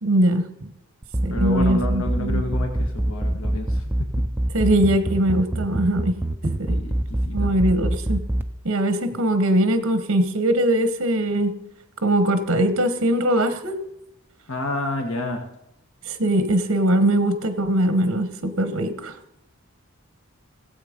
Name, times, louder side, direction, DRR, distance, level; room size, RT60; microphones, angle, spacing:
voice 1, 0.0-0.7 1.2-2.4 4.5-6.2 6.4-6.8 7.3-8.2 8.6-11.5 12.0-13.8 16.0-19.2, right 1 dB, 65° right, 10 dB, 1.1 m, -21 dB
sound 1, 1.0-8.4, right 1 dB, 10° right, 0.5 m, -23 dB
voice 2, 1.3-4.3 6.7-7.0 7.2-7.5 14.5-15.4, left 2 dB, 75° left, 4 dB, 1.5 m, -29 dB
17.0 x 7.9 x 5.1 m, 0.85 s
head